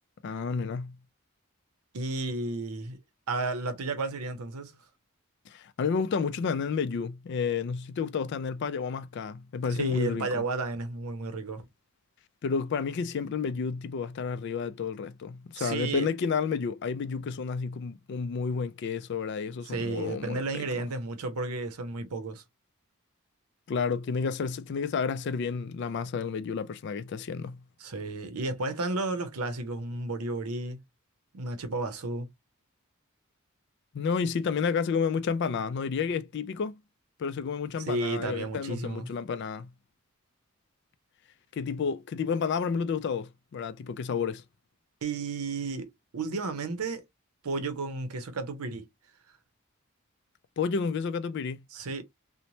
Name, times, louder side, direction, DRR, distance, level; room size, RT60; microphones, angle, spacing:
voice 1, 0.2-1.0 5.5-10.4 12.4-20.8 23.7-27.6 33.9-36.8 37.2-39.7 41.5-44.4 50.6-51.6, left 5 dB, 50° left, 0.3 m, -31 dB
voice 2, 1.9-3.0 3.3-4.7 9.8-11.7 15.6-16.1 19.7-22.4 27.8-30.8 31.3-32.3 37.9-39.1 45.0-47.0 47.4-48.9 51.7-52.0, right 3 dB, 85° right, 0.7 m, -32 dB
3.0 x 2.1 x 2.6 m
head